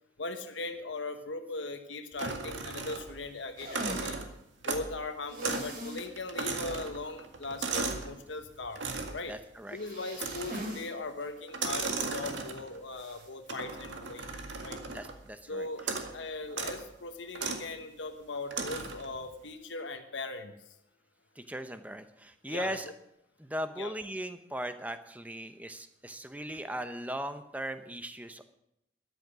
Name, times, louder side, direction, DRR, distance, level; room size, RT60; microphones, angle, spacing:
voice 1, 0.2-4.2 4.6-8.8 9.1-9.4 9.7-14.3 14.6-14.8 15.5-15.8 16.1-20.5 22.5-22.8 23.8-23.9, left 2 dB, 80° left, 6 dB, 1.2 m, -39 dB
sound 1, 2.2-3.3 3.6-5.0 5.4-5.7 6.0-8.1 8.8-9.2 10.1-10.7 11.5-12.8 13.5-15.2 15.8-16.1 16.5-16.8 17.3-17.7 18.5-19.1, right 4 dB, 75° right, 1.9 m, -36 dB
sound 2, 3.6-4.1 5.3-6.1 6.4-6.5 6.9-7.0 9.7-10.9 11.2-11.3 12.9-13.3, equal, 45° right, 3.3 m, -40 dB
voice 2, 9.3-9.8 14.9-15.7 21.4-22.8 23.4-28.4, equal, 10° right, 9 dB, 0.8 m, -38 dB
13.5 x 11.0 x 6.2 m, 0.80 s
head